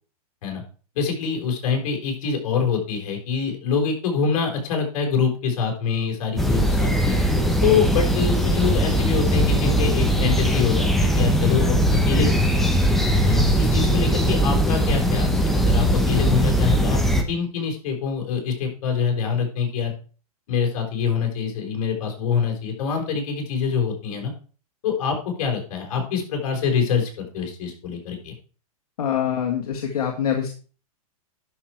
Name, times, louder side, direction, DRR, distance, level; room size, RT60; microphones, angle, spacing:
voice 1, 0.9-7.2 7.6-12.7 13.2-17.0 17.3-19.9 20.5-24.3 24.8-28.3, left 6 dB, 55° left, 2 dB, 4.7 m, -25 dB
sound 1, 6.4-17.2, equal, ahead, 1.1 m, -20 dB
voice 2, 29.0-30.5, left 9 dB, 75° left, 1 dB, 1.9 m, -24 dB
11.5 x 6.2 x 4.7 m, 0.38 s
hypercardioid pair, 145°, 19 cm